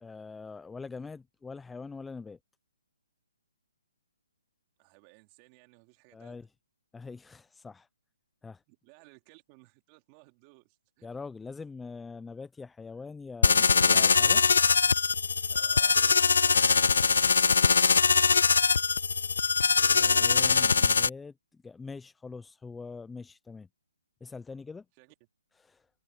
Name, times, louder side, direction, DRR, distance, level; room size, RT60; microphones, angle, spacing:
voice 1, 0.0-2.4 6.1-6.5 6.9-7.9 8.4-8.6 11.0-14.4 19.9-23.7 24.2-24.9 25.6-25.9, left 4 dB, 5° left, 0.6 m, -43 dB
voice 2, 4.8-6.4 8.7-11.1 15.5-18.0 25.0-25.1, right 28 dB, 25° right, 3.2 m, -58 dB
sound 1, 13.4-21.1, left 5 dB, 75° left, 0.4 m, -22 dB
hypercardioid pair, 160°, 0 cm